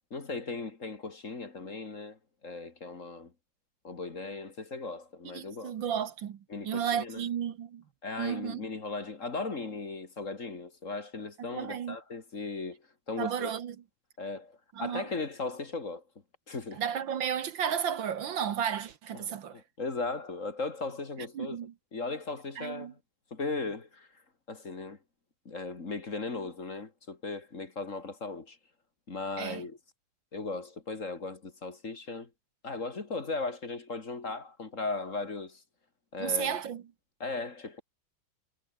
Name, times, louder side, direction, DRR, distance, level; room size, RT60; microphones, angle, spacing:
voice 1, 0.1-3.3 3.8-5.8 6.5-7.2 8.0-12.8 13.1-13.5 14.2-16.0 16.5-16.8 19.1-21.6 21.9-23.0 23.3-24.1 24.5-25.0 25.5-28.6 29.1-29.8 30.3-32.3 32.6-35.6 36.1-36.6 37.2-37.8, left 3 dB, 35° left, 2.5 m, -37 dB
voice 2, 5.3-7.8 8.2-8.6 11.5-12.0 13.2-13.8 14.8-15.1 16.7-19.6 21.4-21.7 22.6-22.9 29.4-29.7 36.2-36.8, right 8 dB, 65° right, 1.9 m, -33 dB
omnidirectional pair, 2.3 m